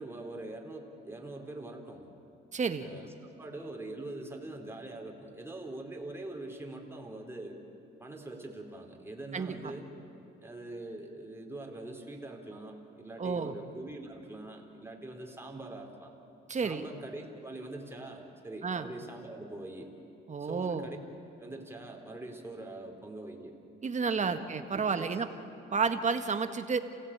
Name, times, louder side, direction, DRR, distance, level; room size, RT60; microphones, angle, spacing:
voice 1, 0.0-2.0 2.8-3.1 3.4-7.6 8.0-9.9 10.4-16.1 16.6-19.9 20.4-21.0 21.4-23.5 24.2-24.5 24.7-25.2 25.7-25.8, right 2 dB, 10° right, 1 dB, 3.7 m, -43 dB
voice 2, 2.5-2.9 9.3-9.5 13.2-13.5 16.5-16.8 18.6-18.9 20.3-20.9 23.8-25.3 25.7-26.8, right 5 dB, 35° right, 8 dB, 1.5 m, -31 dB
28.5 x 16.5 x 8.8 m, 2.7 s
cardioid pair, 90°, 20 cm